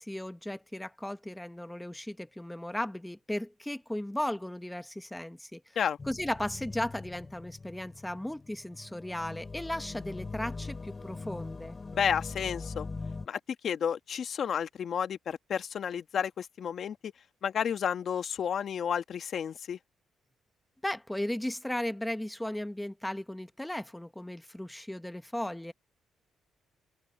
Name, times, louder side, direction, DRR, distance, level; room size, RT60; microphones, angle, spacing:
voice 1, 0.0-5.6 6.1-11.8 20.8-25.7, left 1 dB, 5° left, 1.1 m, -36 dB
sound 1, 6.0-13.3, left 3 dB, 30° left, 2.8 m, -42 dB
voice 2, 11.9-12.9 13.3-17.1 17.4-19.8, left 8 dB, 60° left, 1.6 m, -31 dB
open air
cardioid pair, 90°, 0 cm